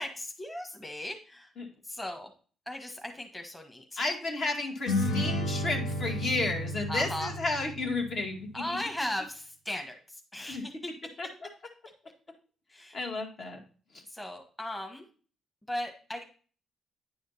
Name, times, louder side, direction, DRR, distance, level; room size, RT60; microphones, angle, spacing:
voice 1, 0.0-1.5 1.8-2.3 2.7-4.0 6.9-7.3 8.5-9.9 10.3-10.7 12.7-12.9 14.1-15.0 15.7-16.2, left 1 dB, 15° left, 3 dB, 1.3 m, -37 dB
voice 2, 4.0-8.8 10.5-10.6 11.2-11.3 12.9-13.6 13.9-14.0, left 2 dB, 60° left, 2 dB, 2.1 m, -32 dB
sound 1, 4.9-8.5, left 1 dB, 90° left, 1.2 m, -32 dB
9.7 x 5.0 x 4.1 m, 0.40 s
cardioid pair, 90°, 0 cm